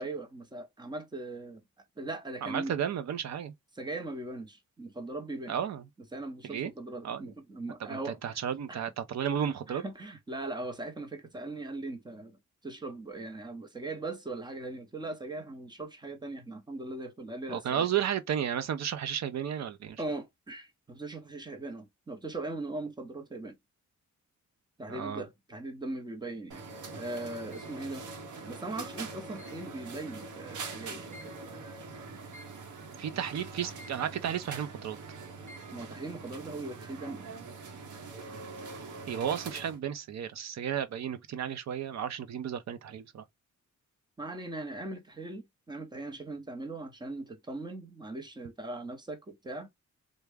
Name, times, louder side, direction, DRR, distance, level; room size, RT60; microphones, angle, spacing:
voice 1, 0.0-1.6 2.0-2.8 3.7-5.6 6.1-8.4 8.7-8.8 9.7-17.9 20.0-23.6 24.8-26.7 26.9-28.0 28.5-31.3 33.2-33.3 35.7-37.2 44.2-49.7, right 2 dB, 15° right, 0.6 m, -39 dB
voice 2, 2.4-3.5 5.5-5.8 6.4-6.7 7.0-7.3 7.9-9.8 17.5-20.0 24.9-25.2 33.0-35.0 39.1-43.2, right 9 dB, 60° right, 0.6 m, -33 dB
sound 1, 26.5-39.8, right 4 dB, 75° right, 1.0 m, -43 dB
3.4 x 2.1 x 3.3 m
wide cardioid pair, 180°, 30 cm